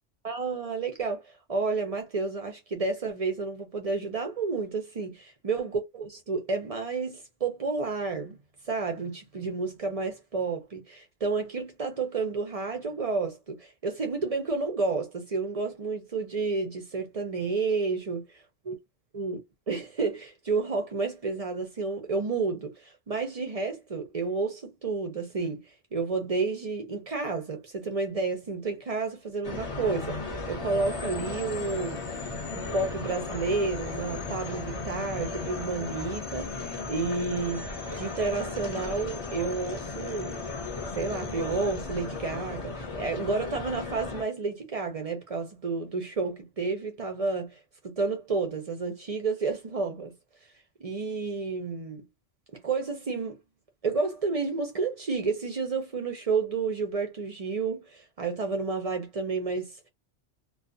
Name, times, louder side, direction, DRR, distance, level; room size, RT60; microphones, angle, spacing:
voice 1, 0.2-5.1 5.4-8.4 8.7-18.2 18.7-18.8 19.1-19.4 19.7-25.6 25.9-32.0 32.5-40.4 40.9-47.6 47.8-50.1 50.8-52.0 52.6-53.4 53.8-59.9, right 4 dB, 45° right, 0.5 m, -31 dB
sound 1, 29.4-44.2, left 3 dB, 35° left, 0.8 m, -36 dB
sound 2, 30.6-42.7, left 4 dB, 70° left, 1.0 m, -45 dB
2.4 x 2.3 x 2.4 m
omnidirectional pair, 1.2 m